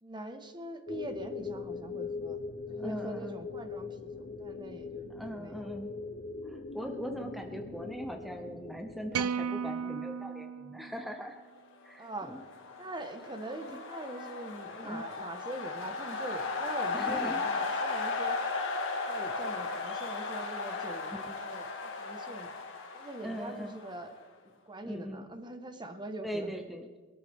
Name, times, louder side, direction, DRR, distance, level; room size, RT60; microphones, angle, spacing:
voice 1, 0.0-2.4 2.7-5.7 12.0-12.4 12.7-18.4 19.1-22.6 22.9-24.1 24.5-26.5, right 1 dB, 20° right, 6 dB, 1.4 m, -43 dB
sound 1, 0.9-9.2, left 4 dB, 40° left, 0.8 m, -41 dB
voice 2, 2.7-3.4 4.2-4.4 5.1-5.9 6.4-11.4 11.8-12.4 13.7-13.8 14.8-15.0 16.9-17.4 21.1-21.2 23.2-23.8 24.8-25.3 26.2-26.9, equal, ahead, 3 dB, 0.8 m, -40 dB
sound 2, 9.1-11.5, right 6 dB, 75° right, 0.4 m, -35 dB
sound 3, 12.2-24.2, left 3 dB, 60° left, 2.1 m, -36 dB
22.0 x 13.0 x 3.6 m, 1.4 s
head